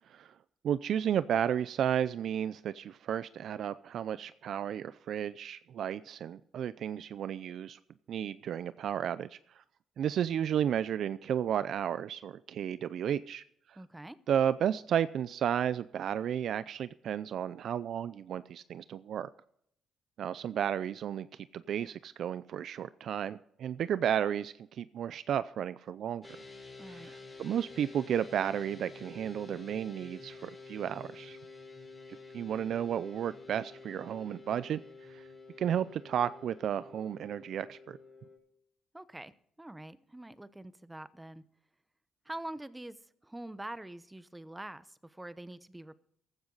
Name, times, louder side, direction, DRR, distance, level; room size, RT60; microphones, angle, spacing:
voice 1, 0.6-7.8 8.1-9.6 10.0-13.4 13.7-13.8 14.3-19.3 20.2-21.3 21.5-26.2 26.9-31.4 32.3-34.8 35.1-35.2 35.6-38.0, right 9 dB, 65° right, 15 dB, 0.5 m, -33 dB
voice 2, 13.8-14.2 26.8-27.1 38.9-39.3 39.6-41.4 42.3-43.0 43.2-45.9, right 1 dB, 10° right, 15 dB, 0.9 m, -45 dB
sound 1, 26.2-38.4, left 3 dB, 15° left, 6.6 m, -50 dB
15.5 x 12.5 x 4.0 m, 0.70 s
cardioid pair, 90°, 0 cm